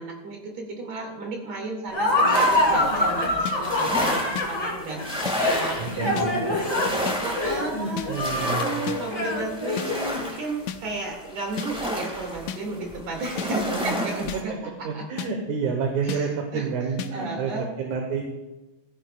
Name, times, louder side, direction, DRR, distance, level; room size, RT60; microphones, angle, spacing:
voice 1, 0.0-6.9 7.2-14.5 14.8-15.2 16.0-16.7 17.1-17.7, right 2 dB, 50° right, 0 dB, 3.2 m, -34 dB
Laughter, 1.9-10.2, left 1 dB, 10° left, 2.9 m, -25 dB
sound 1, 2.3-14.4, equal, 5° right, 0.8 m, -32 dB
sound 2, 3.5-3.6 4.4-4.5 5.3-5.4 6.2-6.3 7.1-7.2 8.0-8.1 8.9-9.0 9.8-9.9 10.7-10.8 11.6-11.7 12.5-12.6 13.4-13.5 14.3-14.4 15.2-15.3 16.1-16.2 17.0-17.1, left 9 dB, 80° left, 1.6 m, -32 dB
voice 2, 5.8-6.4 7.7-8.8 14.3-14.4 14.8-17.5 17.8-18.2, right 5 dB, 65° right, 2 dB, 2.4 m, -29 dB
15.0 x 14.5 x 2.4 m, 1.1 s
omnidirectional pair, 3.9 m